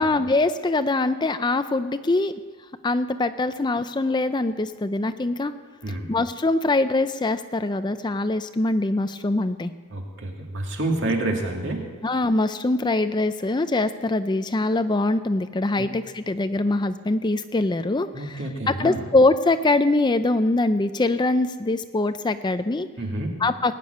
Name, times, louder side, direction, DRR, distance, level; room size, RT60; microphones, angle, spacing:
voice 1, 0.0-2.4 2.8-5.5 6.1-9.7 12.0-18.4 18.7-22.9 23.4-23.7, left 2 dB, 20° left, 10 dB, 0.4 m, -23 dB
voice 2, 9.9-11.9 15.8-15.9 18.1-19.1 23.0-23.4, right 2 dB, 55° right, 1 dB, 2.2 m, -28 dB
19.5 x 6.8 x 9.3 m, 1.4 s
head